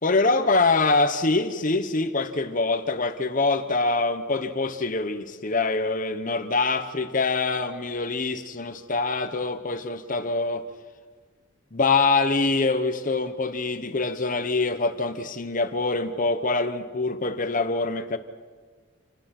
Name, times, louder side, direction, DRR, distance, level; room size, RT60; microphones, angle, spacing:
voice 1, 0.0-10.7 11.7-18.2, left 3 dB, 35° left, 10 dB, 0.9 m, -24 dB
27.5 x 20.0 x 6.0 m, 1.5 s
head